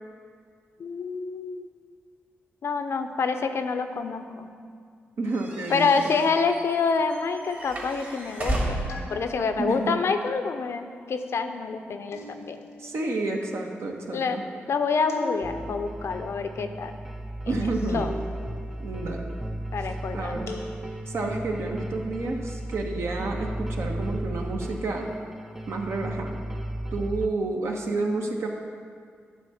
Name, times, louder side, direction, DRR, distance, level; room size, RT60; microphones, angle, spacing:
voice 1, 0.8-1.7 2.6-4.5 5.7-12.6 14.1-14.4 14.7-17.0 17.5-17.6 17.9-18.1 19.7-20.5, left 4 dB, 65° left, 8 dB, 0.6 m, -27 dB
voice 2, 5.2-6.2 9.6-10.0 12.8-14.4 17.5-18.1 18.8-19.4 20.1-20.6 21.1-25.1 25.7-26.4 26.9-28.5, right 2 dB, 70° right, 1 dB, 1.0 m, -30 dB
sound 1, 5.3-9.1, right 1 dB, 45° right, 2.1 m, -33 dB
sound 2, 8.9-9.7 12.1-12.9 15.1-15.9 17.9-18.7 20.5-21.3, left 2 dB, 85° left, 0.9 m, -40 dB
sound 3, 15.4-27.3, right 1 dB, 5° right, 0.5 m, -34 dB
9.9 x 3.6 x 7.0 m, 2.1 s
cardioid pair, 60°, 5 cm